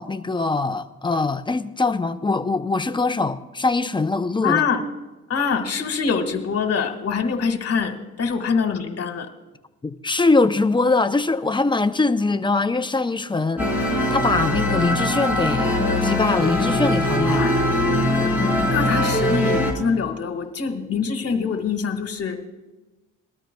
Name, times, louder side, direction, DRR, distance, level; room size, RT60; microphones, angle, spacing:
voice 1, 0.0-4.6 9.8-15.7 16.0-17.5, left 3 dB, 15° left, 0.6 m, -22 dB
voice 2, 4.4-4.8 5.3-9.3 17.4-17.6 18.7-22.4, left 5 dB, 55° left, 1.7 m, -24 dB
sound 1, 13.6-19.7, left 1 dB, 5° right, 4.0 m, -21 dB
21.0 x 13.0 x 2.3 m
cardioid pair, 90°, 30 cm